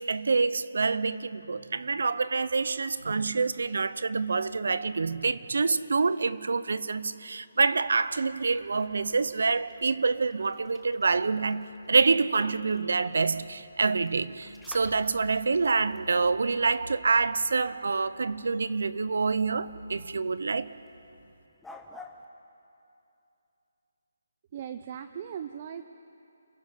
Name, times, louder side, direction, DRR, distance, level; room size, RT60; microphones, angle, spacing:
voice 1, 0.0-20.7, right 4 dB, 70° right, 0.8 m, -27 dB
sound 1, 7.8-22.3, left 2 dB, 5° left, 0.9 m, -55 dB
voice 2, 24.5-25.8, right 8 dB, 30° right, 0.6 m, -38 dB
29.0 x 17.0 x 5.8 m
hypercardioid pair, 165°, 0 cm